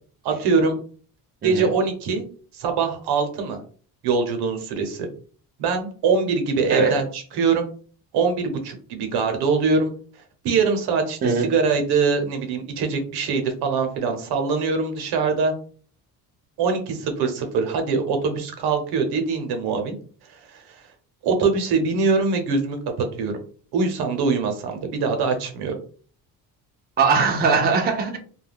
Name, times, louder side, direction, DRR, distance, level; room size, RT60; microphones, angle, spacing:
voice 1, 0.2-0.8 1.4-2.2 2.5-3.6 4.0-5.1 5.6-7.7 8.1-9.9 10.4-15.5 16.6-20.0 20.3-20.8 21.2-22.8 23.2-23.3 23.7-25.7, right 4 dB, 80° right, 0.8 m, -23 dB
voice 2, 6.7-7.0 11.2-11.5 27.0-28.2, right 4 dB, 25° right, 0.5 m, -20 dB
2.3 x 2.2 x 3.3 m
cardioid pair, 110°, 38 cm